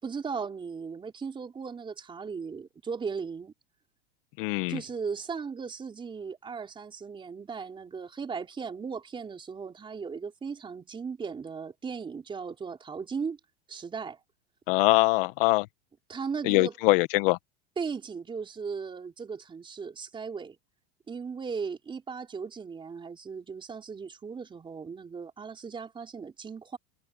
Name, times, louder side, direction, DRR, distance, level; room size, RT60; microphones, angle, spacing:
voice 1, 0.0-3.5 4.7-13.4 13.7-14.2 16.1-16.7 17.8-20.6 21.1-26.8, right 5 dB, 15° right, 4.2 m, -37 dB
voice 2, 4.4-4.8 14.7-15.7 16.4-17.4, left 23 dB, 60° left, 1.6 m, -23 dB
supercardioid pair, 145°, 32 cm